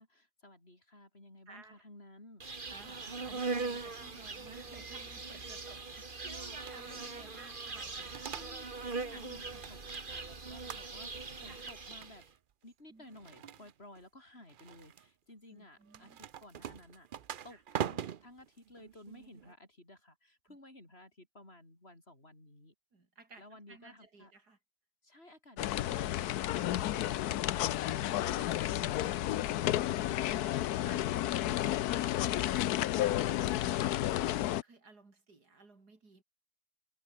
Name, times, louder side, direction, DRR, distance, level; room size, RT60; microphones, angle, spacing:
voice 1, 0.0-2.4 5.3-5.6 5.9-6.0 6.5-7.4 8.2-12.2 12.6-22.7 23.4-24.3, left 1 dB, 40° left, 6.8 m, -56 dB
voice 2, 1.5-1.8 2.7-8.4 9.1-9.3 11.5-11.7 12.9-13.7 15.5-16.2 17.5-17.6 20.5-20.6 22.9-24.6 25.9-26.1 29.9-30.1 30.5-31.3 32.5-36.2, right 3 dB, 90° right, 4.5 m, -56 dB
Insect, 2.4-12.2, right 3 dB, 35° right, 2.0 m, -41 dB
sound 1, 6.5-7.0 7.8-8.9 9.2-10.3 10.7-11.2 11.5-12.4 13.1-14.0 14.5-15.1 15.9-19.5, right 9 dB, 65° right, 0.5 m, -43 dB
sound 2, 25.6-34.6, left 13 dB, 80° left, 1.2 m, -31 dB
omnidirectional pair, 1.7 m